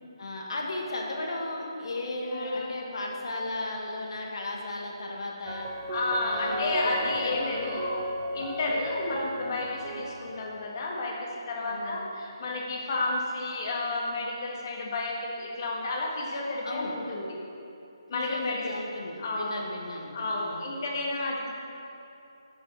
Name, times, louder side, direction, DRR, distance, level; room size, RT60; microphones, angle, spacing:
voice 1, 0.2-5.7 6.2-7.8 11.6-12.0 16.6-16.9 18.1-20.6, left 2 dB, 60° left, 0 dB, 1.6 m, -35 dB
voice 2, 2.3-2.7 5.9-8.0 8.3-17.3 18.1-18.6 19.2-19.6 20.1-21.5, left 2 dB, 40° left, -2 dB, 1.6 m, -31 dB
s layered piano alt, 5.5-10.5, right 1 dB, 30° right, 0.6 m, -35 dB
7.4 x 5.7 x 7.1 m, 2.8 s
figure-of-eight pair, 150°, 3 cm